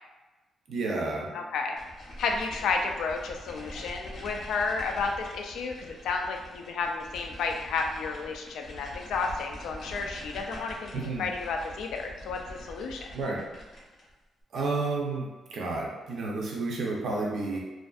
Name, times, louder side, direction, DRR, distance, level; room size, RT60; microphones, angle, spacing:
voice 1, 0.7-1.3 10.9-11.3 13.1-13.4 14.5-17.6, right 3 dB, 50° right, -2 dB, 0.5 m, -31 dB
voice 2, 1.3-1.8 2.2-13.1, left 4 dB, 75° left, 3 dB, 0.3 m, -32 dB
sound 1, 1.8-14.1, left 1 dB, 45° left, 0.7 m, -44 dB
2.5 x 2.5 x 2.3 m, 1.2 s
cardioid pair, 175°, 0 cm